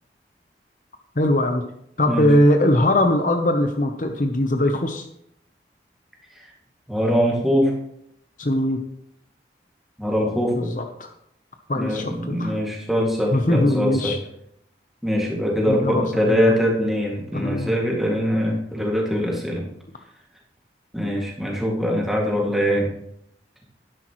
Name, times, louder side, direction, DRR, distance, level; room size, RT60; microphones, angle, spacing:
voice 1, 1.2-1.6 2.0-5.1 8.4-8.8 10.6-11.1 11.7-12.5 13.3-14.2 15.7-16.4 17.3-17.7, left 1 dB, 45° left, 5 dB, 0.8 m, -21 dB
voice 2, 6.9-7.8 10.0-10.7 11.8-14.1 15.0-19.6 20.9-22.9, equal, ahead, -3 dB, 2.1 m, -22 dB
12.0 x 10.0 x 3.1 m, 0.74 s
head